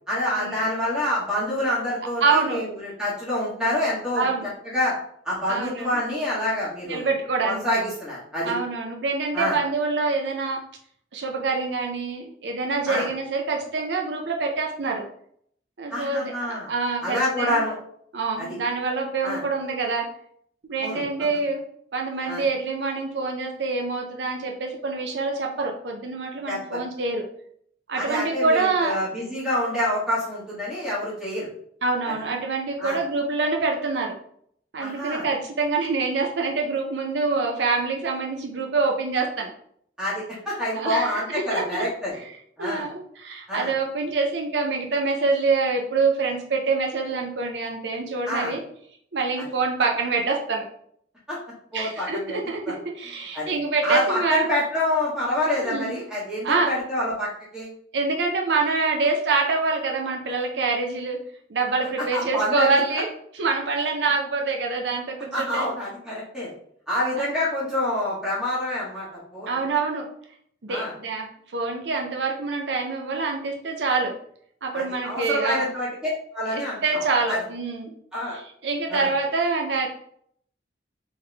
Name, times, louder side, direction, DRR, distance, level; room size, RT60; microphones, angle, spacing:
voice 1, 0.1-4.3 4.7-4.9 5.2-7.1 7.4-8.5 9.3-9.6 12.9-13.1 15.9-16.7 17.0-17.7 18.4-18.6 19.2-19.4 20.8-21.0 22.2-22.4 26.5-26.8 27.9-31.5 32.0-32.1 32.8-33.0 34.8-35.2 40.0-42.1 42.6-42.9 43.5-43.7 48.3-48.5 51.3-51.4 51.7-52.4 53.3-53.5 53.8-57.7 62.0-62.8 65.3-66.5 66.9-69.5 70.7-70.9 74.7-75.9 76.3-77.4 78.1-78.4 78.9-79.1, left 1 dB, 5° right, -8 dB, 1.7 m, -27 dB
voice 2, 2.2-2.6 4.2-4.5 5.5-6.0 6.9-7.8 8.4-10.6 11.1-15.0 15.8-17.6 18.1-20.1 20.6-21.6 21.9-27.2 27.9-29.0 31.8-34.1 34.7-39.5 40.7-41.8 42.6-48.6 49.1-50.7 51.7-54.5 55.6-56.0 56.4-56.7 57.9-61.2 61.5-63.1 63.4-65.7 67.2-67.3 69.5-70.1 70.6-71.2 71.5-74.2 74.6-75.7 76.5-77.9 78.3-79.9, right 4 dB, 75° right, 2 dB, 0.6 m, -26 dB
3.6 x 3.5 x 3.3 m, 0.66 s
head